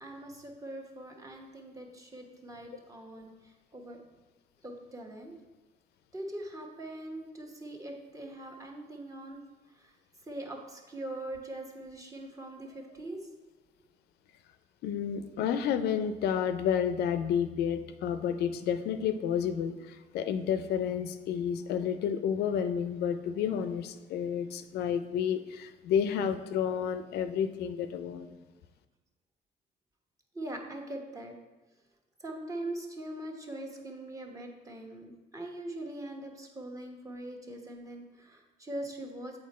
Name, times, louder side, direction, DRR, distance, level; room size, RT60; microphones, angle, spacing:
voice 1, 0.0-3.3 3.7-4.0 4.6-5.3 6.1-9.4 9.8-9.9 10.3-13.2 30.3-31.3 32.2-39.4, right 1 dB, 20° right, 1 dB, 1.1 m, -42 dB
voice 2, 14.8-28.3, left 8 dB, 75° left, 10 dB, 0.5 m, -30 dB
7.5 x 4.3 x 4.2 m, 1.2 s
cardioid pair, 110°, 17 cm